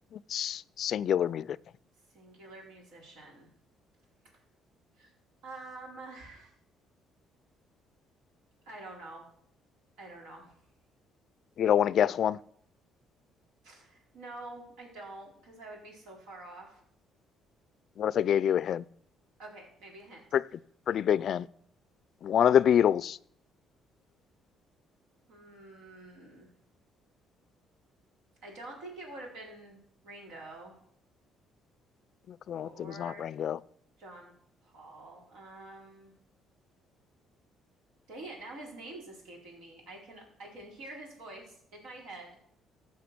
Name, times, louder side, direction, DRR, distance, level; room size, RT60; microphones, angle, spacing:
voice 1, 0.1-1.5 11.6-12.4 18.0-18.8 20.3-20.4 20.9-21.5 22.2-23.2 32.3-33.6, left 9 dB, 60° left, 0.3 m, -26 dB
voice 2, 2.1-3.5 5.0-5.1 5.4-6.5 8.7-9.3 10.0-10.6 13.6-16.8 19.4-20.2 25.2-26.5 28.4-30.8 32.6-33.2 34.0-34.3 34.6-36.1 38.1-42.3, right 2 dB, 90° right, 4.4 m, -47 dB
15.0 x 5.7 x 6.0 m
cardioid pair, 100°, 0 cm